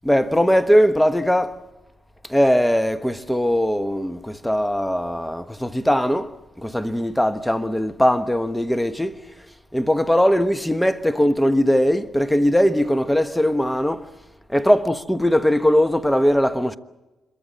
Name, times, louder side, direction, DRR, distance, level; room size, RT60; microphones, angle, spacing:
voice 1, 0.0-1.6 2.3-9.2 9.7-14.1 14.5-16.8, equal, 5° left, 1.2 m, -20 dB
26.5 x 23.0 x 7.9 m
cardioid pair, 65°, 0 cm